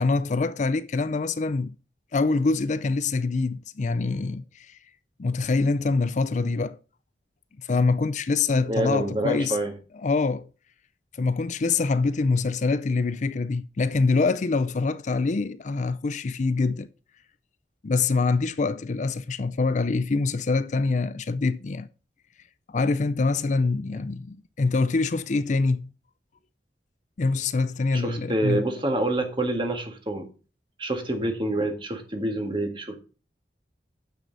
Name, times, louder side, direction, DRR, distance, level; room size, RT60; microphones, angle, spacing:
voice 1, 0.0-1.7 2.1-4.8 5.2-6.8 7.6-9.6 10.0-10.5 11.2-16.9 17.8-21.9 22.7-25.9 27.2-28.6, left 3 dB, 45° left, 0.4 m, -25 dB
voice 2, 8.7-9.7 27.9-30.3 30.8-33.0, right 1 dB, 30° right, 1.7 m, -27 dB
9.3 x 6.7 x 3.9 m
head